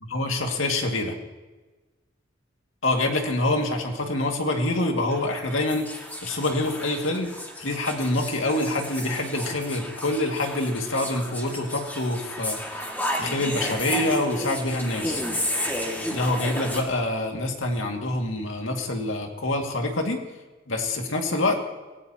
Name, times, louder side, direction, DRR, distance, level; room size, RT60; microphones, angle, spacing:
voice 1, 0.1-1.1 2.8-7.3 7.6-15.2 16.1-20.2 20.7-21.5, left 2 dB, 75° left, 2 dB, 2.2 m, -26 dB
sound 1, 5.1-16.8, equal, 10° left, 2.1 m, -32 dB
25.5 x 17.5 x 2.9 m, 1.2 s
head